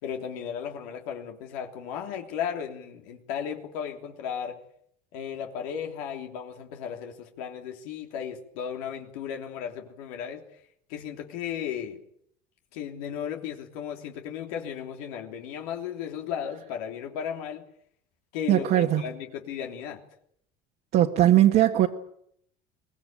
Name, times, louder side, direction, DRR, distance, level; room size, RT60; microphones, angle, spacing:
voice 1, 0.0-4.6 5.1-10.4 10.9-12.0 12.7-17.7 18.3-20.0, left 8 dB, 90° left, 3.3 m, -35 dB
voice 2, 18.5-19.0 20.9-21.9, right 13 dB, 60° right, 1.7 m, -19 dB
23.5 x 19.5 x 9.0 m
supercardioid pair, 110°, 19 cm